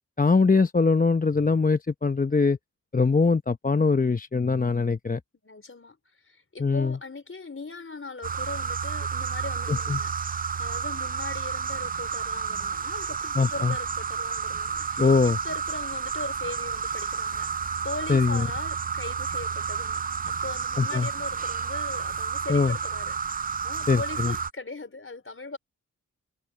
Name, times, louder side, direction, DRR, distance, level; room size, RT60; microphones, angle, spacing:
voice 1, 0.2-2.6 2.9-5.2 6.6-7.0 9.7-10.0 13.4-13.7 15.0-15.4 18.1-18.4 20.8-21.1 22.5-22.7 23.9-24.3, left 4 dB, 25° left, 0.8 m, -22 dB
voice 2, 5.4-6.0 6.2-25.6, left 3 dB, 45° left, 4.6 m, -40 dB
sound 1, 8.2-24.5, right 6 dB, 30° right, 0.4 m, -31 dB
cardioid pair, 55°, 31 cm